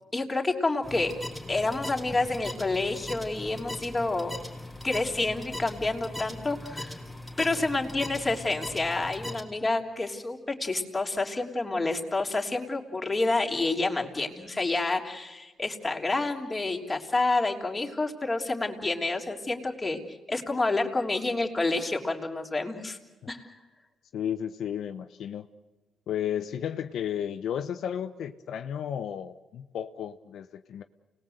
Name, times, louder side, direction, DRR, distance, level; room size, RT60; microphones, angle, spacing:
voice 1, 0.1-1.1 1.5-4.3 4.8-7.0 7.4-20.0 20.3-23.0 23.3-23.5, left 2 dB, 15° left, 1 dB, 3.3 m, -28 dB
sound 1, 0.8-9.4, left 1 dB, ahead, 3.0 m, -40 dB
voice 2, 24.1-25.5 26.1-30.8, left 9 dB, 70° left, 8 dB, 0.8 m, -33 dB
29.5 x 19.5 x 7.9 m, 1.2 s
cardioid pair, 90°, 0 cm